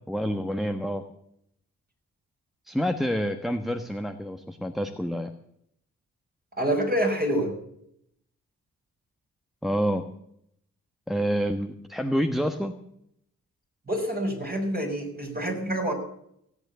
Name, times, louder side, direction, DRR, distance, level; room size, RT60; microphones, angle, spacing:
voice 1, 0.1-1.0 2.7-5.3 9.6-10.0 11.1-12.7, equal, ahead, 6 dB, 1.3 m, -28 dB
voice 2, 6.6-7.5 13.9-15.9, right 1 dB, 25° right, 2 dB, 5.8 m, -27 dB
17.5 x 8.2 x 8.2 m, 0.73 s
supercardioid pair, 45°, 36 cm